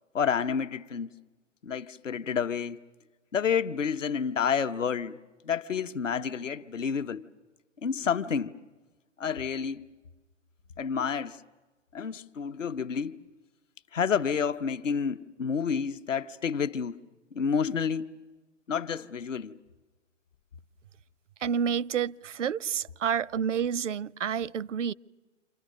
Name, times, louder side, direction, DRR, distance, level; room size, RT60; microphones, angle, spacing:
voice 1, 0.1-1.1 1.6-2.8 3.3-5.2 5.4-7.3 7.8-8.6 9.2-9.9 10.8-11.4 11.9-13.2 13.9-17.0 17.3-18.1 18.7-19.6, left 6 dB, 75° left, 1.2 m, -29 dB
voice 2, 21.4-24.9, right 7 dB, 70° right, 0.7 m, -29 dB
29.0 x 28.0 x 6.5 m
figure-of-eight pair, 120°, 38 cm